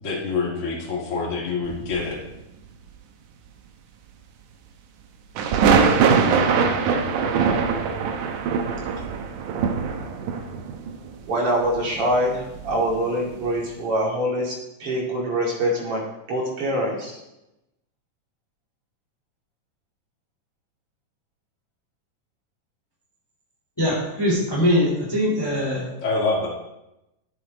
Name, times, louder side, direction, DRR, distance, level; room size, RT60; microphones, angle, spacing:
voice 1, 0.0-2.2 26.0-26.5, left 3 dB, 25° left, -3 dB, 1.9 m, -26 dB
sound 1, 1.6-2.3 5.4-13.1 13.4-13.7, right 5 dB, 80° right, 2.3 m, -22 dB
voice 2, 11.3-16.0 16.3-17.2, equal, 45° right, -3 dB, 3.1 m, -24 dB
voice 3, 23.8-25.9, left 1 dB, 5° left, -6 dB, 3.2 m, -22 dB
11.5 x 8.5 x 3.9 m, 0.91 s
omnidirectional pair, 3.7 m